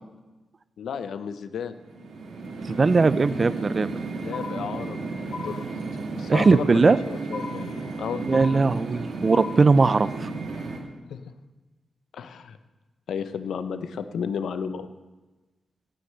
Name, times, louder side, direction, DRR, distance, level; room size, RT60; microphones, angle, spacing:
voice 1, 0.8-1.8 4.2-5.6 6.2-7.7 8.0-8.4 11.1-11.2 12.1-12.6 13.1-14.9, left 7 dB, 80° left, 11 dB, 0.8 m, -33 dB
sound 1, 1.7-10.8, right 3 dB, 80° right, 2.3 m, -33 dB
voice 2, 2.7-3.9 6.3-7.0 8.3-10.3, right 4 dB, 45° right, 16 dB, 0.5 m, -19 dB
sound 2, 4.3-5.0 5.3-6.0 6.3-7.0 7.3-8.0 8.3-9.0 9.3-10.0, left 5 dB, 60° left, 0.4 m, -38 dB
17.5 x 6.6 x 8.0 m, 1.2 s
cardioid pair, 55°, 0 cm